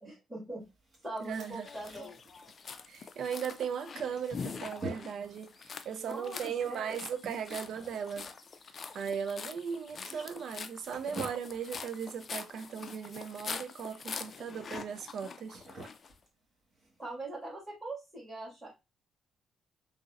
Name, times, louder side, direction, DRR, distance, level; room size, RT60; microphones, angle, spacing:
voice 1, 0.0-0.6 1.0-2.2 5.9-7.0 17.0-18.7, right 2 dB, 5° right, 1.9 m, -42 dB
sound 1, 0.6-17.1, right 2 dB, 40° right, 1.5 m, -49 dB
voice 2, 1.2-1.7 2.9-8.3 8.9-15.7, right 7 dB, 65° right, 0.4 m, -37 dB
sound 2, 1.3-16.1, left 5 dB, 45° left, 0.3 m, -44 dB
3.8 x 2.0 x 2.4 m
cardioid pair, 90°, 0 cm